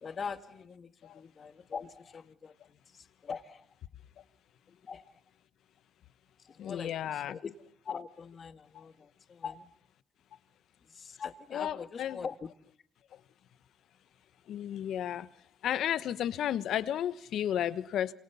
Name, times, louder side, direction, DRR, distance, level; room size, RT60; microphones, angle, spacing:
voice 1, 0.0-3.7 4.7-5.1 6.4-7.5 7.8-9.7 10.9-12.3, left 6 dB, 45° left, 9 dB, 1.9 m, -42 dB
voice 2, 6.6-7.4 11.5-12.2 14.5-15.2 15.6-18.1, left 10 dB, 75° left, 14 dB, 1.2 m, -32 dB
28.0 x 26.5 x 7.0 m, 0.63 s
cardioid pair, 90°, 0 cm